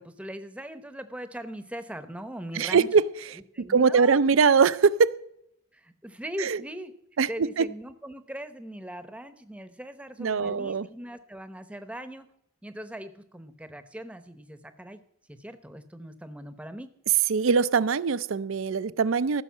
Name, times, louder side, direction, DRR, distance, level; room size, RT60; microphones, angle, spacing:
voice 1, 0.0-2.9 3.5-4.2 5.7-6.9 7.3-12.3 12.6-15.0 15.3-16.9, equal, 5° right, 0.8 m, -40 dB
voice 2, 2.5-3.0 3.6-5.1 6.4-6.6 7.2-7.7 10.2-10.9 17.3-19.4, right 5 dB, 75° right, 0.5 m, -22 dB
15.0 x 6.4 x 7.3 m
head